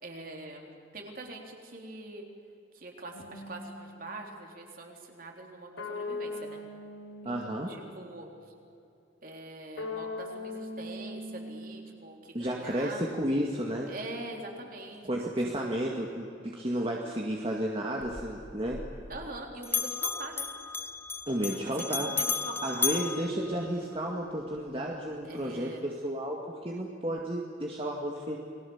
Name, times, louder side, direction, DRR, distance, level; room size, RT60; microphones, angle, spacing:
voice 1, 0.0-2.2 2.7-6.6 7.2-8.3 9.2-13.1 13.9-15.3 19.1-20.5 21.8-23.0 25.2-25.9, right 2 dB, 45° right, 1 dB, 3.8 m, -43 dB
sound 1, 3.1-4.2 5.8-8.2 9.8-12.2, left 2 dB, 80° left, 4.3 m, -40 dB
voice 2, 7.2-7.7 12.3-13.9 15.0-18.8 21.3-22.1 22.6-26.4 26.6-28.4, right 1 dB, 30° right, -1 dB, 2.0 m, -32 dB
Bell, 18.0-19.4 19.6-24.1, left 4 dB, 10° left, 0.7 m, -34 dB
30.0 x 21.0 x 7.3 m, 2.6 s
head